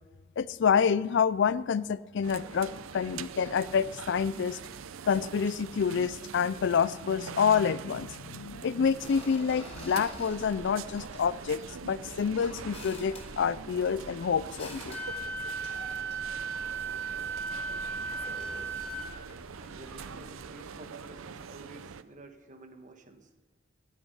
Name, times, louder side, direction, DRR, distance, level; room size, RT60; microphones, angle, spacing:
voice 1, 0.4-4.6 5.1-15.0, left 6 dB, 60° left, 18 dB, 0.4 m, -28 dB
sound 1, 2.2-22.0, right 6 dB, 80° right, 0.6 m, -44 dB
sound 2, 8.8-20.5, left 1 dB, 30° left, 3.4 m, -49 dB
Wind instrument woodwind instrument, 14.9-19.1, right 4 dB, 5° left, 2.5 m, -36 dB
voice 2, 19.6-23.3, right 2 dB, 40° right, 6 dB, 1.4 m, -50 dB
16.5 x 11.5 x 5.5 m, 1.3 s
head